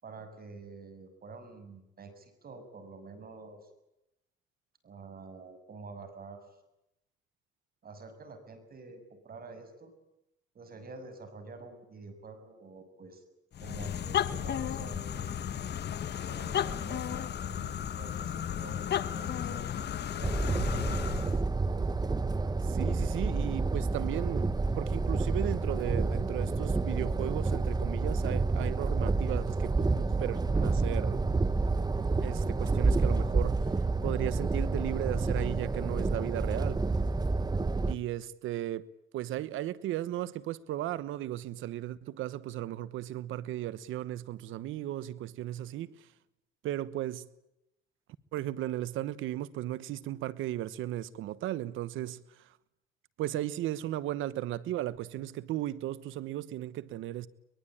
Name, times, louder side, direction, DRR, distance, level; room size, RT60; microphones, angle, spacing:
voice 1, 0.0-3.7 4.8-6.4 7.8-9.9 10.5-13.2 13.6-15.3 16.2-20.3, right 3 dB, 50° right, 6.7 m, -48 dB
sound 1, 13.5-21.4, left 9 dB, 55° left, 1.3 m, -34 dB
sound 2, 20.2-37.9, right 3 dB, 20° right, 1.0 m, -29 dB
voice 2, 22.6-31.2 32.2-33.7 34.0-36.9 37.9-38.9 39.1-46.1 46.6-47.3 48.3-52.6 53.2-57.3, right 13 dB, 90° right, 1.2 m, -36 dB
23.5 x 22.5 x 8.8 m
cardioid pair, 90°, 20 cm